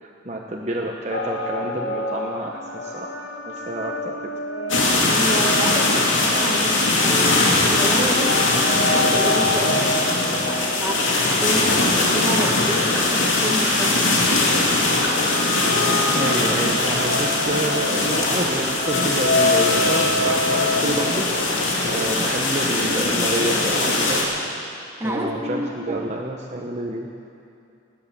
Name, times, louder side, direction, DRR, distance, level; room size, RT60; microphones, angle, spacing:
voice 1, 0.0-3.1 3.5-4.1 11.5-12.0 16.1-21.3 21.9-24.2 25.0-25.6 25.9-27.1, right 1 dB, 35° right, 0 dB, 1.0 m, -28 dB
sound 1, 1.1-13.6 14.3-20.8, left 1 dB, 55° left, 1.6 m, -28 dB
sound 2, 4.7-24.2, left 2 dB, 85° left, 2.6 m, -21 dB
voice 2, 5.1-8.4 8.7-10.0 10.5-11.8 12.1-14.4 25.0-26.1, equal, 15° right, 0 dB, 1.5 m, -30 dB
18.0 x 11.0 x 6.9 m, 2.6 s
head